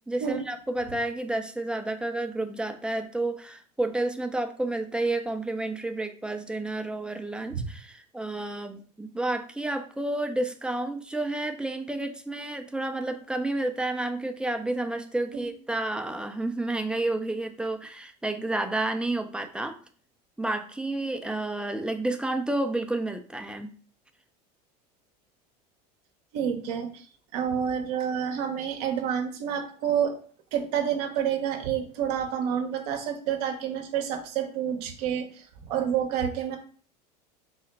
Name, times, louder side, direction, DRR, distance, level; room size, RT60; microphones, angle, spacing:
voice 1, 0.1-19.8 20.4-23.7, right 2 dB, 5° right, 6 dB, 0.4 m, -30 dB
voice 2, 26.3-27.0 27.3-30.1 30.5-36.6, right 8 dB, 70° right, 4 dB, 0.8 m, -29 dB
4.0 x 2.1 x 4.0 m, 0.44 s
hypercardioid pair, 85°, 21 cm